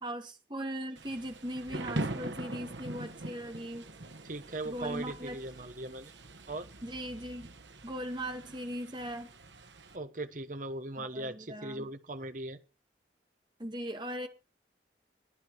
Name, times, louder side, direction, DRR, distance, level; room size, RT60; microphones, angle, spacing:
voice 1, 0.0-3.8 4.6-5.4 6.8-7.5 7.8-9.3 11.0-11.9 13.6-14.3, equal, 25° right, 1.9 m, -39 dB
Thunder / Rain, 1.0-10.0, right 2 dB, 85° right, 1.6 m, -42 dB
voice 2, 4.2-6.1 6.5-6.7 9.9-12.6, right 2 dB, 45° right, 1.3 m, -39 dB
15.0 x 9.9 x 4.7 m
head